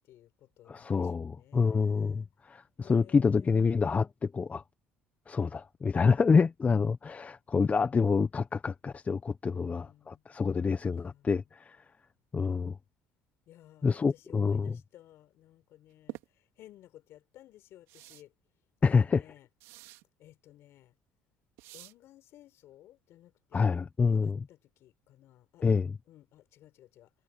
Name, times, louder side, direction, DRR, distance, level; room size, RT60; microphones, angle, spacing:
voice 1, 0.0-2.3 2.8-3.7 6.1-6.5 9.5-10.2 10.9-11.4 13.5-18.3 18.8-19.5 20.2-20.9 21.7-23.7 24.1-25.6 26.1-27.1, left 13 dB, 65° left, 4.4 m, -57 dB
voice 2, 0.7-4.6 5.3-11.8 12.3-12.8 13.8-14.8 18.8-19.2 23.5-24.4 25.6-26.0, left 5 dB, 30° left, 1.0 m, -27 dB
sound 1, 16.1-16.3 17.9-18.2 19.6-20.0 21.6-21.9, right 19 dB, 75° right, 3.3 m, -46 dB
supercardioid pair, 70°, 5 cm